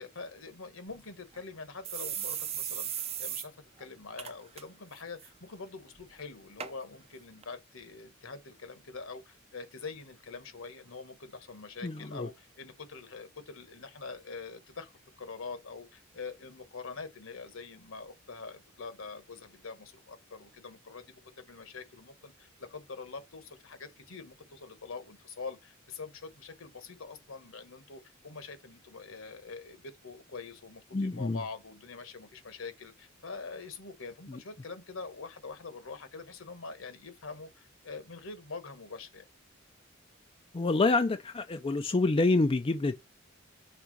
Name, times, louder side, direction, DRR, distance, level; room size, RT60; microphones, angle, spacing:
voice 1, 0.0-39.3, left 4 dB, 70° left, 1.4 m, -45 dB
sound 1, 0.9-1.0 1.3-1.4 1.8-3.5 3.8-3.9 4.2-4.6 5.0-5.3 6.0-6.1 6.6-6.7 7.4-7.5, right 9 dB, 30° right, 0.6 m, -36 dB
voice 2, 11.8-12.3 30.9-31.4 40.5-43.0, left 3 dB, 25° left, 0.4 m, -27 dB
5.9 x 3.6 x 5.1 m
head